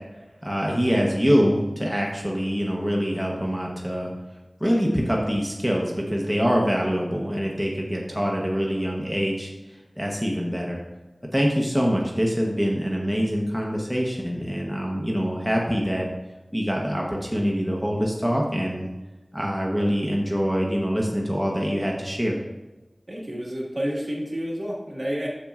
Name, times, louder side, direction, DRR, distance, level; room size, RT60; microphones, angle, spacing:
voice 1, 0.4-4.1 4.6-9.5 10.0-10.8 11.3-16.1 16.5-18.9 19.3-22.4, equal, ahead, -2 dB, 0.9 m, -24 dB
voice 2, 23.1-25.3, equal, 50° right, -4 dB, 1.7 m, -29 dB
7.2 x 6.7 x 2.4 m, 1.1 s
wide cardioid pair, 50°, 0 cm